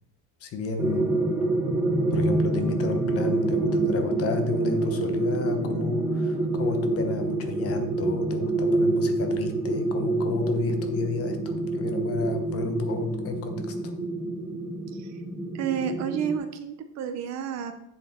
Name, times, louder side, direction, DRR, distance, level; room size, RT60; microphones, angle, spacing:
voice 1, 0.4-1.2 2.1-13.9, left 4 dB, 35° left, 7 dB, 0.9 m, -32 dB
sound 1, 0.8-16.4, right 2 dB, 5° right, 1.0 m, -27 dB
voice 2, 15.5-17.7, right 8 dB, 40° right, 8 dB, 0.6 m, -30 dB
8.0 x 7.0 x 4.3 m, 0.81 s
cardioid pair, 175°, 43 cm